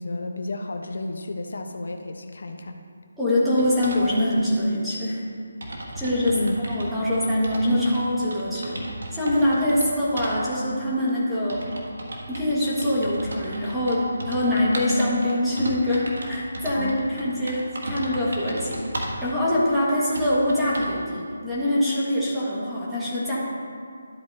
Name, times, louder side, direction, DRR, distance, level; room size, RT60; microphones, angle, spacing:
voice 1, 0.0-2.8 6.2-6.6 16.7-17.0, left 2 dB, 70° left, 5 dB, 0.8 m, -31 dB
voice 2, 3.2-5.2 5.9-6.4 6.7-8.8 9.1-11.6 12.3-23.4, left 1 dB, 5° right, -10 dB, 1.4 m, -24 dB
sound 1, 3.6-4.1 4.9-5.0 5.3-5.4 5.6-8.0 8.3-9.9 10.2-10.3 11.1-19.2 19.7-19.8 20.1-21.0, right 1 dB, 75° right, 1.9 m, -35 dB
11.5 x 8.1 x 2.7 m, 2.2 s
hypercardioid pair, 170°, 0 cm